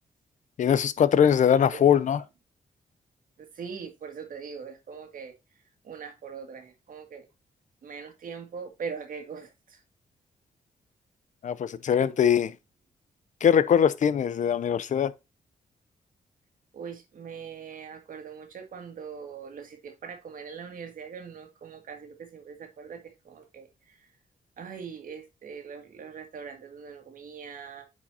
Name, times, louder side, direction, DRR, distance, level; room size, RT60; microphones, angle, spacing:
voice 1, 0.6-2.2 11.4-12.5 13.4-15.1, left 8 dB, 55° left, 0.6 m, -22 dB
voice 2, 1.5-1.9 3.4-5.3 5.8-7.3 7.8-9.8 16.7-24.1 24.6-27.9, right 6 dB, 65° right, 1.9 m, -41 dB
9.6 x 4.9 x 2.8 m
cardioid pair, 120°, 15 cm